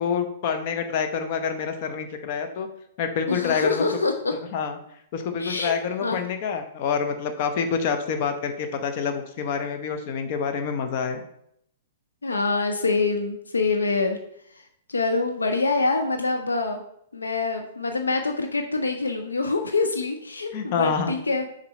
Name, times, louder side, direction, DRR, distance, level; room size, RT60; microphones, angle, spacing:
voice 1, 0.0-2.7 3.0-3.8 4.5-4.8 5.1-11.2 20.5-21.1, left 6 dB, 45° left, 6 dB, 0.8 m, -27 dB
voice 2, 3.3-4.3 5.4-5.7 6.0-6.2 12.2-14.2 14.9-16.8 17.1-21.5, left 3 dB, 80° left, 5 dB, 0.6 m, -25 dB
6.9 x 3.9 x 4.1 m, 0.72 s
figure-of-eight pair, 110°, 0 cm